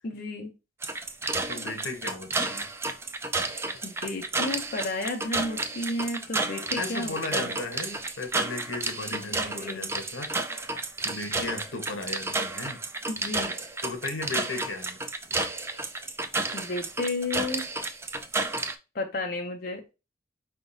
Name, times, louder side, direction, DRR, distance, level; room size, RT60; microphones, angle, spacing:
voice 1, 0.0-0.5 3.8-7.6 9.1-9.9 13.1-13.5 16.5-17.6 18.9-19.9, left 2 dB, 50° left, 0.6 m, -33 dB
sound 1, 0.8-18.7, right 3 dB, 15° right, 0.3 m, -31 dB
voice 2, 1.5-2.7 6.7-10.6 11.0-12.8 13.8-15.0, left 3 dB, 85° left, 1.0 m, -36 dB
4.5 x 3.5 x 2.6 m
head